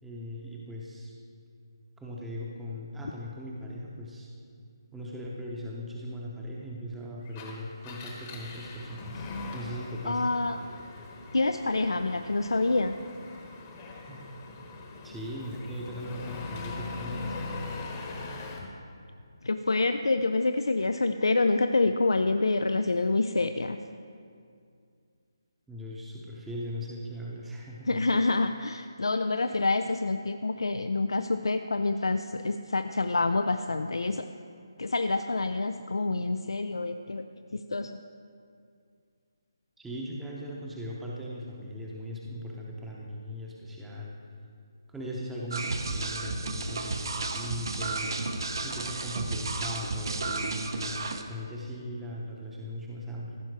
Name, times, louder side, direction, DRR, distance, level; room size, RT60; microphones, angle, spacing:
voice 1, 0.0-1.1 2.0-4.3 4.9-9.3 9.5-10.2 14.1-14.3 15.0-17.4 25.7-28.0 39.8-44.2 44.9-48.1 48.6-53.4, equal, 5° right, -4 dB, 0.7 m, -39 dB
Engine, 7.2-18.7, left 3 dB, 25° left, 1.0 m, -41 dB
voice 2, 10.1-10.6 11.3-12.9 19.4-23.8 27.9-34.3 34.8-37.2 37.5-38.0, left 3 dB, 90° left, 8 dB, 0.4 m, -27 dB
sound 1, 45.5-51.2, right 3 dB, 65° right, 0.8 m, -33 dB
15.0 x 5.6 x 4.7 m, 2.3 s
hypercardioid pair, 165°, 2 cm